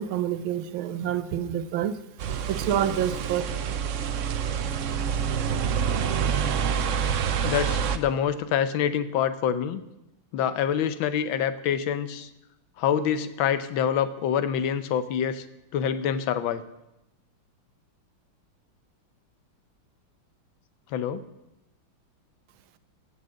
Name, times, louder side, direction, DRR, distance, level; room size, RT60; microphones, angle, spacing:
voice 1, 0.0-1.9 2.5-3.4, right 10 dB, 85° right, 13 dB, 1.6 m, -27 dB
sound 1, 2.2-8.0, right 7 dB, 70° right, 0.7 m, -27 dB
voice 2, 7.4-9.8 10.3-12.3 12.8-15.4 15.7-16.6 20.9-21.2, left 8 dB, 80° left, 13 dB, 1.6 m, -26 dB
16.5 x 6.6 x 7.6 m, 0.91 s
omnidirectional pair, 2.2 m